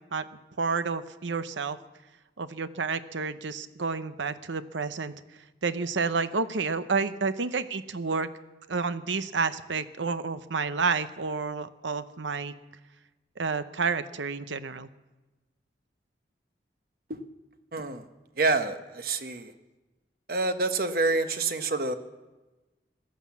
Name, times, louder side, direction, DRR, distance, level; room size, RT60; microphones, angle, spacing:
voice 1, 0.6-1.8 2.4-5.1 5.6-8.3 8.7-12.5 13.4-14.9, right 4 dB, 90° right, 12 dB, 0.8 m, -30 dB
voice 2, 17.7-18.0 18.4-19.5 20.3-21.9, right 3 dB, 55° right, 9 dB, 1.0 m, -27 dB
16.5 x 11.5 x 7.3 m, 1.1 s
head